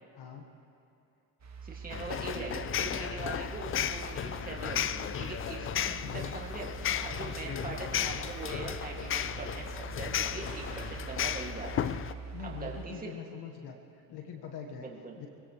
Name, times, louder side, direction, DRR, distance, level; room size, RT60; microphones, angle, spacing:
voice 1, 0.1-0.5 6.0-6.3 7.4-7.7 12.3-14.9 15.1-15.3, left 7 dB, 55° left, 4 dB, 1.5 m, -43 dB
sound 1, 1.4-12.9, right 5 dB, 35° right, 1.9 m, -44 dB
voice 2, 1.6-6.7 7.0-11.9 12.4-13.1 14.8-15.2, right 4 dB, 20° right, -2 dB, 2.4 m, -42 dB
sound 2, 1.9-12.1, left 10 dB, 30° left, 0.5 m, -34 dB
sound 3, 6.7-7.3 8.1-8.6 10.2-11.3, left 1 dB, 85° left, 4.8 m, -51 dB
24.0 x 16.5 x 3.3 m, 2.8 s
hypercardioid pair, 65°, 47 cm